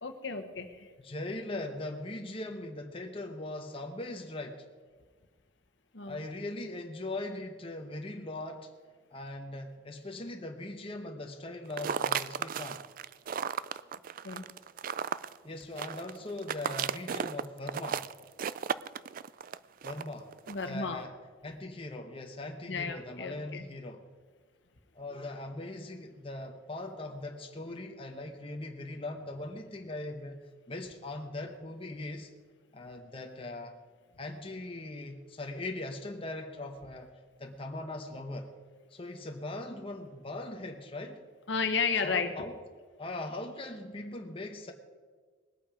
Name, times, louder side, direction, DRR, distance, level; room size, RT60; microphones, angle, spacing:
voice 1, 0.0-0.9 5.9-6.2 14.2-14.4 20.5-21.0 22.7-23.6 41.5-42.3, left 5 dB, 65° left, 7 dB, 1.2 m, -33 dB
voice 2, 1.0-4.6 6.1-8.7 9.1-12.8 15.4-18.1 19.8-20.3 20.6-21.2 21.4-24.0 24.9-32.3 32.7-33.7 34.2-37.1 37.4-38.5 38.9-41.2 42.0-42.6 43.0-44.7, left 2 dB, 30° left, 3 dB, 0.9 m, -40 dB
sound 1, 11.7-20.7, right 7 dB, 45° right, 0.3 m, -35 dB
20.0 x 8.6 x 5.1 m, 1.5 s
head